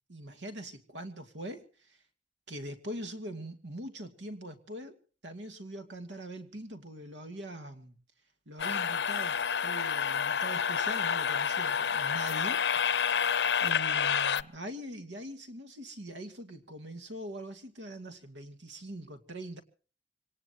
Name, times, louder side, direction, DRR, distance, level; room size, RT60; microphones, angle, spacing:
voice 1, 0.1-2.0 2.5-5.0 5.2-7.9 8.5-13.1 13.6-19.6, right 1 dB, 90° right, 8 dB, 2.4 m, -42 dB
sound 1, 8.6-14.4, left 7 dB, 70° left, 0.7 m, -29 dB
25.5 x 18.5 x 2.9 m, 0.39 s
head